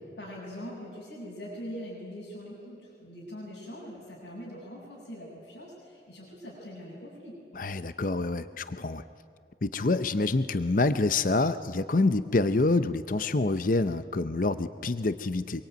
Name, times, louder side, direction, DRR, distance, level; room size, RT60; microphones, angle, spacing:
voice 1, 0.2-7.4, equal, 85° left, -7 dB, 7.4 m, -42 dB
voice 2, 7.5-9.0 9.6-15.6, left 3 dB, 45° left, 12 dB, 0.7 m, -27 dB
25.0 x 23.0 x 9.2 m, 2.4 s
head